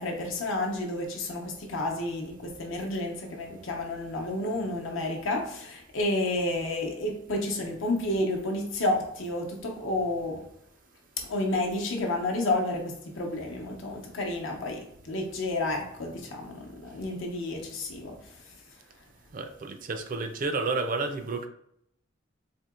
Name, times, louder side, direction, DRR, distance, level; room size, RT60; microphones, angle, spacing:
voice 1, 0.0-10.4 11.3-14.8 15.1-18.1, left 2 dB, 75° left, 0 dB, 0.8 m, -30 dB
voice 2, 19.3-21.5, right 3 dB, 45° right, 6 dB, 0.4 m, -31 dB
4.3 x 2.8 x 2.3 m, 0.71 s
head